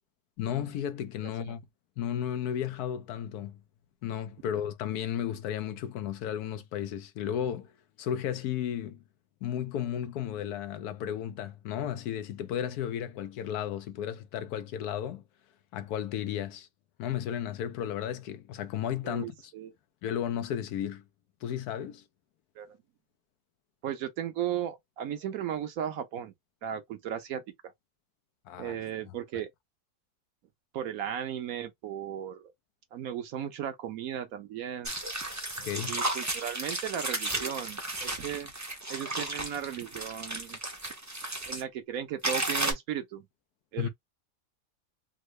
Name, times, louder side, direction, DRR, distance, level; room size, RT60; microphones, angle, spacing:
voice 1, 0.4-1.6 2.0-3.6 4.0-7.7 8.0-9.0 9.4-15.2 15.7-16.7 17.0-19.5 20.0-21.0 21.4-22.0 28.5-28.8 29.1-29.2 35.6-36.0 43.8-43.9, left 10 dB, 80° left, 1.1 m, -34 dB
voice 2, 19.0-19.7 22.6-22.8 23.8-26.3 26.6-27.4 28.6-29.5 30.7-32.5 32.9-34.9 35.9-38.5 38.9-40.6 41.4-43.2 43.7-43.9, right 10 dB, 70° right, 1.1 m, -36 dB
sound 1, 34.8-41.6 42.2-42.7, right 2 dB, 20° right, 0.5 m, -34 dB
3.7 x 2.0 x 3.1 m
omnidirectional pair, 1.6 m